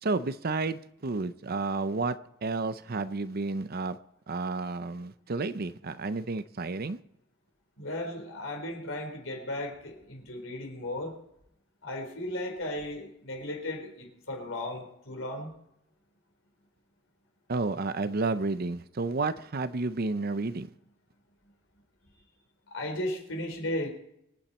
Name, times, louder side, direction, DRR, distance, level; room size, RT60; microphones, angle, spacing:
voice 1, 0.0-4.0 4.3-7.0 17.5-20.7, right 3 dB, 50° right, 0.7 m, -31 dB
voice 2, 7.8-11.1 11.8-15.5 22.7-23.9, left 1 dB, 70° left, 4.3 m, -35 dB
25.0 x 8.9 x 4.4 m
head